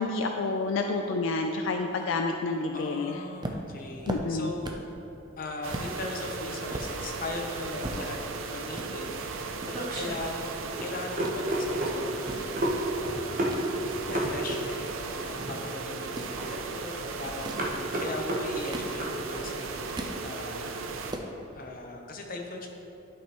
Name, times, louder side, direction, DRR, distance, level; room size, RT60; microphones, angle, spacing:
voice 1, 0.0-3.2 4.1-4.5, left 3 dB, 75° left, 4 dB, 0.4 m, -29 dB
voice 2, 2.7-4.9 5.4-13.5 13.8-20.8 21.5-22.7, left 2 dB, 45° left, 1 dB, 0.8 m, -39 dB
sound 1, 3.4-5.0 5.3-5.4 5.7-5.9 6.4-8.4 8.7-8.9 9.6-10.8 11.0-11.4 12.0-13.7 14.1-15.4 16.0-16.4 17.2-17.7 18.4-19.3 19.7-20.2 20.6-20.7 20.9-21.3, right 1 dB, 20° right, 0.4 m, -39 dB
sound 2, 5.6-21.1, right 4 dB, 80° right, 0.5 m, -37 dB
sound 3, 9.0-19.4, right 1 dB, 40° right, 0.9 m, -32 dB
11.5 x 5.2 x 3.0 m, 3.0 s
head